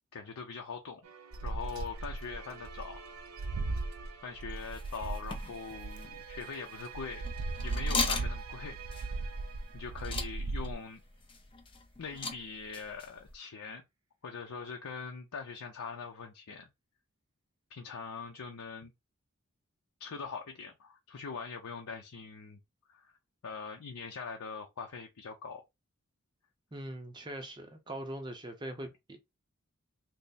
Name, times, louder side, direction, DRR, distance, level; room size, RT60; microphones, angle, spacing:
voice 1, 0.1-1.0 1.4-3.0 4.2-7.2 7.6-8.8 9.7-11.0 12.0-13.8 14.2-16.7 17.7-18.9 20.0-22.6 22.9-23.1 23.4-25.6, left 5 dB, 90° left, 0.6 m, -42 dB
sound 1, 1.0-10.8, right 7 dB, 90° right, 0.8 m, -50 dB
sound 2, 1.3-6.4 6.9-10.7, right 3 dB, 65° right, 0.4 m, -37 dB
sound 3, 4.6-13.3, left 4 dB, 25° left, 0.5 m, -40 dB
voice 2, 26.7-29.2, right 1 dB, 20° right, 0.6 m, -41 dB
3.3 x 2.0 x 4.0 m
head